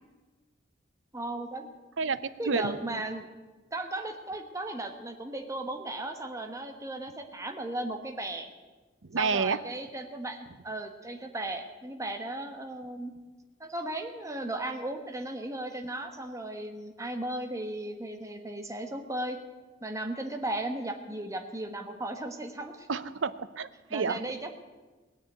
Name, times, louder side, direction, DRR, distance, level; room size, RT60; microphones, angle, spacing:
voice 1, 1.1-1.7 2.0-2.1 2.4-3.3 3.7-8.5 9.2-13.1 13.6-19.4 19.8-22.9 23.9-24.5, right 1 dB, 15° right, 5 dB, 1.3 m, -36 dB
voice 2, 2.0-3.0 9.1-9.6 22.9-24.2, right 5 dB, 80° right, 14 dB, 0.7 m, -30 dB
20.0 x 6.8 x 9.2 m, 1.3 s
head